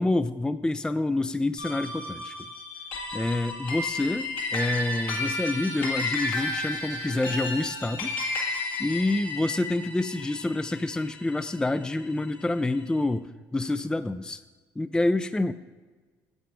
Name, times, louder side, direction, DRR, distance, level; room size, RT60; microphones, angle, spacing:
voice 1, 0.0-2.3 3.1-8.2 8.8-14.4 14.8-15.5, left 2 dB, 10° left, 12 dB, 0.4 m, -27 dB
sound 1, 1.6-12.2, left 2 dB, 70° left, 1.7 m, -33 dB
8.9 x 7.5 x 4.9 m, 1.3 s
hypercardioid pair, 60°, 8 cm